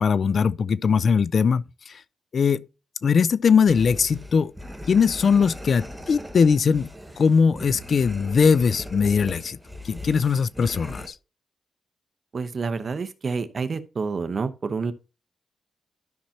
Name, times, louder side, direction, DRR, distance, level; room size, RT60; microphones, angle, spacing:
voice 1, 0.0-1.6 2.3-2.6 3.0-4.5 4.9-6.9 7.2-9.6 9.8-11.1, left 6 dB, 60° left, 0.4 m, -20 dB
sound 1, 3.7-11.1, left 1 dB, 5° right, 1.5 m, -39 dB
voice 2, 12.3-14.9, right 4 dB, 50° right, 0.9 m, -28 dB
12.5 x 5.8 x 2.8 m
cardioid pair, 80°, 0 cm